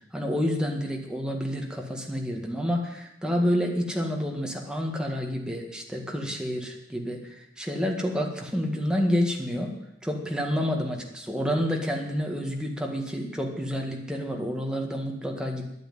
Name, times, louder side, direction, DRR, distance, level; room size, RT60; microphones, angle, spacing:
voice 1, 0.1-9.7 10.0-15.7, equal, 5° right, 1 dB, 1.8 m, -29 dB
10.0 x 9.3 x 9.4 m, 0.87 s
head